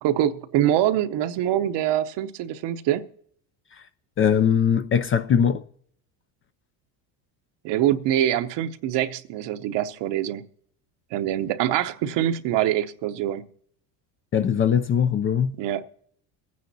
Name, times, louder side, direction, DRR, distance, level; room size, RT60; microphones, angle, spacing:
voice 1, 0.0-3.0 7.6-10.5 11.1-13.4 15.5-15.9, right 12 dB, 60° right, 0.9 m, -24 dB
voice 2, 4.2-5.6 14.3-15.6, left 8 dB, 30° left, 0.4 m, -21 dB
23.5 x 9.5 x 2.7 m
supercardioid pair, 95°, 49 cm